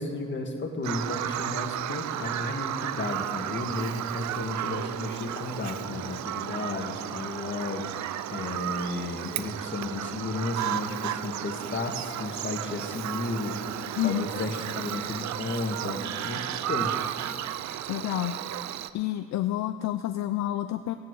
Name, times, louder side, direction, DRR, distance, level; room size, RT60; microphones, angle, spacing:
voice 1, 0.0-7.8 8.3-17.0, left 2 dB, 40° left, 3 dB, 1.7 m, -33 dB
Bird vocalization bird call bird song, 0.8-18.9, right 12 dB, 65° right, 0.5 m, -33 dB
voice 2, 14.0-14.4 17.9-18.4 18.9-21.0, left 13 dB, 65° left, 10 dB, 0.5 m, -29 dB
16.0 x 9.2 x 4.7 m, 2.3 s
cardioid pair, 90°, 30 cm